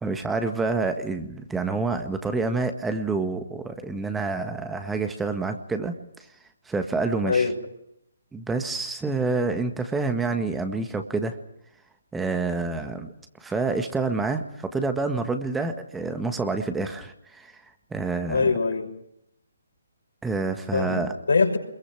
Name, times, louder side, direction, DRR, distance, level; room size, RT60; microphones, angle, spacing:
voice 1, 0.0-5.9 6.6-7.5 8.3-11.4 12.1-13.1 13.4-18.5 20.2-21.1, right 3 dB, 5° right, 6 dB, 1.7 m, -28 dB
voice 2, 7.2-7.5 18.3-18.9 20.7-21.6, left 4 dB, 70° left, 3 dB, 6.4 m, -23 dB
27.0 x 22.5 x 6.1 m, 0.75 s
figure-of-eight pair, 140°, 0 cm